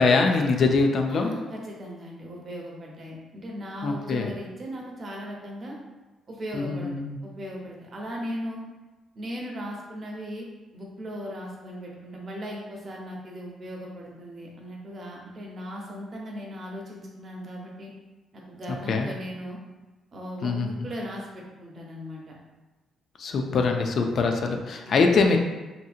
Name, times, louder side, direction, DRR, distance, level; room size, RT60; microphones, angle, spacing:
voice 1, 0.0-1.3 3.8-4.3 6.5-7.2 18.9-19.1 20.4-20.7 23.2-25.4, left 4 dB, 60° left, 3 dB, 0.3 m, -23 dB
voice 2, 1.1-5.8 6.3-6.9 7.2-8.6 9.1-10.5 10.7-17.9 18.3-19.6 20.1-22.4 23.6-23.8 24.8-25.2, equal, 45° right, -2 dB, 0.7 m, -37 dB
2.7 x 2.6 x 2.4 m, 1.2 s
cardioid pair, 90°, 0 cm